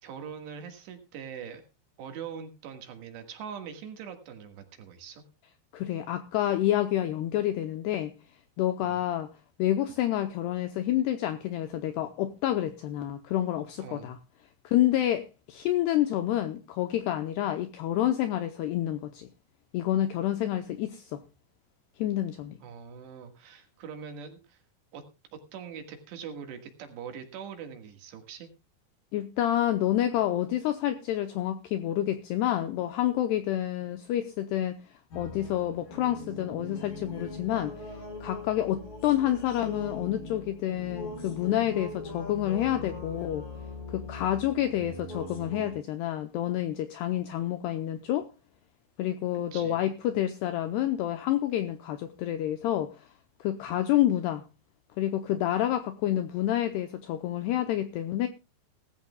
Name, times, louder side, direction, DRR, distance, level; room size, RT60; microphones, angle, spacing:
voice 1, 0.0-1.6 2.0-5.2 8.8-9.0 13.8-14.2 22.6-24.6 24.9-25.0 25.3-28.5 49.5-49.8, right 7 dB, 65° right, 3.6 m, -42 dB
voice 2, 5.7-8.1 8.6-9.3 9.6-14.2 14.6-19.3 19.7-21.2 22.0-22.6 29.1-34.8 35.1-37.8 38.2-43.5 43.9-48.3 49.0-53.1 53.4-54.4 55.0-58.3, left 12 dB, 85° left, 2.4 m, -28 dB
sound 1, 35.1-45.7, left 2 dB, 45° left, 7.0 m, -41 dB
18.5 x 14.5 x 2.3 m
omnidirectional pair, 5.7 m